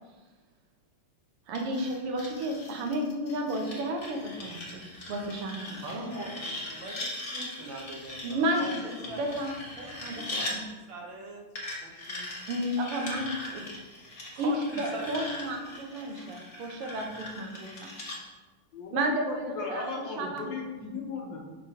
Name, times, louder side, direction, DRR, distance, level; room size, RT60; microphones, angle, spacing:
sound 1, 1.5-10.6 11.6-18.2, left 1 dB, 40° left, 0.9 m, -40 dB
voice 1, 1.5-4.8 5.1-6.3 8.2-9.6 10.0-10.6 12.5-13.7 14.4-17.9 18.9-19.9 20.2-20.5, right 1 dB, 85° right, 2 dB, 1.8 m, -32 dB
voice 2, 5.8-8.7 9.1-9.2 9.8-10.5 10.9-11.4 11.8-12.3 14.3-14.6 14.9-15.3 15.9-16.1, right 2 dB, 65° right, 0 dB, 1.6 m, -41 dB
voice 3, 18.7-21.4, left 4 dB, 65° left, 0 dB, 1.5 m, -36 dB
5.9 x 3.2 x 5.5 m, 1.3 s
omnidirectional pair, 2.4 m